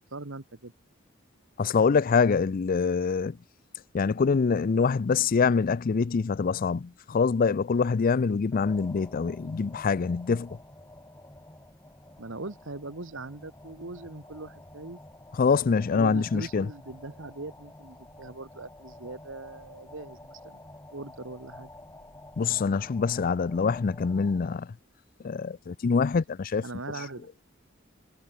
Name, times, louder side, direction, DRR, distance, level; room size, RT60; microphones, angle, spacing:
voice 1, 0.1-0.7 12.2-15.0 15.9-20.6 20.9-21.7 26.6-27.4, right 2 dB, 70° right, 1.6 m, -40 dB
voice 2, 1.6-3.4 3.9-10.5 15.4-16.7 22.4-24.7 25.2-26.6, left 5 dB, 45° left, 0.4 m, -25 dB
sound 1, 8.5-24.6, left 1 dB, 15° left, 4.6 m, -49 dB
head